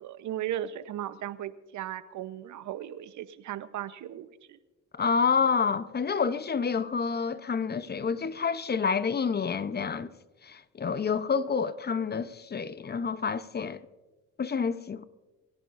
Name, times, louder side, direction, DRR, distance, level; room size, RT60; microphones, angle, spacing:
voice 1, 0.0-4.6, right 11 dB, 75° right, 0.9 m, -36 dB
voice 2, 4.9-10.1 10.4-13.8 14.4-15.0, left 5 dB, 35° left, 0.8 m, -28 dB
23.5 x 16.5 x 2.6 m
cardioid pair, 90°, 30 cm